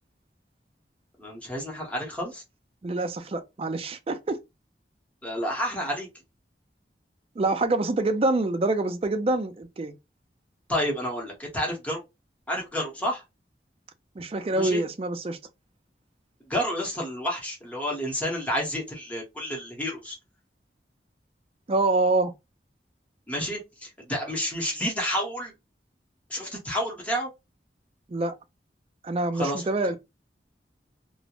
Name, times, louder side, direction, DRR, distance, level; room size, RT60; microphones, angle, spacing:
voice 1, 1.2-2.4 5.2-6.1 10.7-12.0 12.5-13.2 14.5-14.8 16.5-20.2 23.3-25.5 26.3-27.3 29.3-29.6, equal, 10° left, 0.8 m, -30 dB
voice 2, 2.8-4.4 7.4-10.0 14.2-15.4 21.7-22.3 28.1-28.4 29.0-30.0, right 2 dB, 35° right, 0.4 m, -26 dB
2.3 x 2.1 x 2.8 m
head